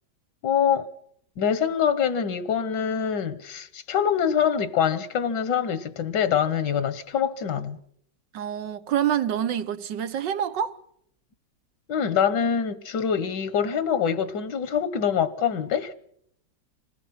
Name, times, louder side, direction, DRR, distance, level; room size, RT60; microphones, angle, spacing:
voice 1, 0.4-0.9 1.4-7.8 11.9-15.9, left 8 dB, 75° left, 1.7 m, -25 dB
voice 2, 8.3-10.8, right 9 dB, 85° right, 1.8 m, -27 dB
27.0 x 19.5 x 5.8 m
omnidirectional pair, 1.9 m